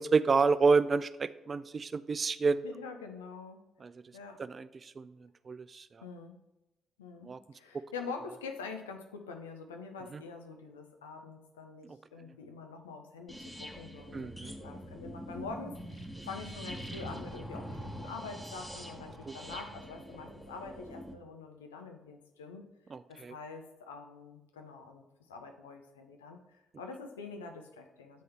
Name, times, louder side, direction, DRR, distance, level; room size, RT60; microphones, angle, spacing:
voice 1, 0.0-2.6 3.8-3.9 4.4-6.0 7.2-7.4 10.1-10.2 14.1-14.5 19.3-19.4 22.9-23.3, right 4 dB, 40° right, 15 dB, 0.3 m, -29 dB
voice 2, 2.6-3.6 4.1-4.4 6.0-6.4 7.0-22.7 23.1-28.2, left 4 dB, 90° left, 5 dB, 0.5 m, -45 dB
sound 1, 13.3-21.1, equal, 5° left, 1.1 m, -44 dB
8.3 x 3.9 x 3.4 m, 0.95 s
hypercardioid pair, 50°, 0 cm